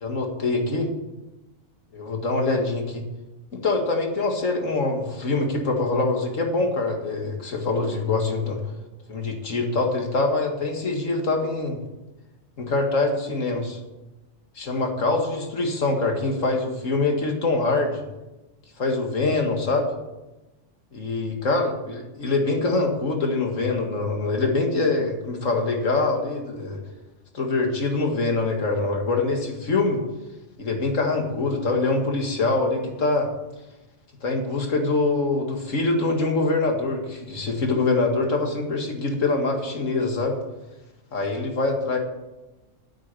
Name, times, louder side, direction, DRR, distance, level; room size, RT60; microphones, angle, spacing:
voice 1, 0.0-0.9 1.9-3.0 3.5-8.6 9.1-11.8 12.6-13.8 14.6-18.0 18.8-19.9 20.9-26.8 27.3-30.0 30.6-33.3 34.2-40.4 41.1-42.0, left 3 dB, 90° left, 3 dB, 2.3 m, -24 dB
9.0 x 8.4 x 9.2 m, 1.0 s
omnidirectional pair, 1.3 m